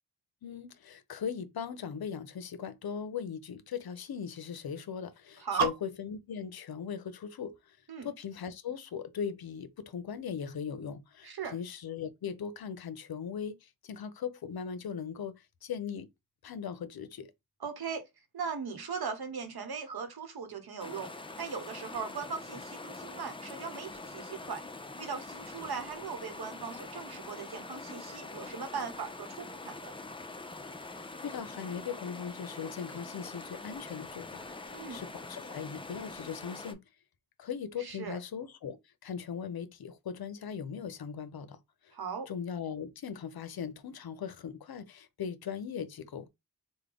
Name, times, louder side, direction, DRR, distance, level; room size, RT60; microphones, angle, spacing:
voice 1, 0.4-7.8 8.0-16.1 16.4-17.3 31.0-36.8 37.4-38.8 39.0-41.6 41.8-41.9 42.3-46.3, left 7 dB, 70° left, 0.6 m, -39 dB
voice 2, 5.4-5.7 7.9-8.1 11.2-11.5 17.6-18.1 18.3-21.1 21.4-24.6 25.0-29.9 34.7-35.0 37.8-38.2 41.9-42.3, right 6 dB, 75° right, 0.9 m, -38 dB
sound 1, 20.8-36.7, left 3 dB, 15° left, 0.4 m, -44 dB
3.5 x 2.2 x 3.4 m
wide cardioid pair, 60°, 38 cm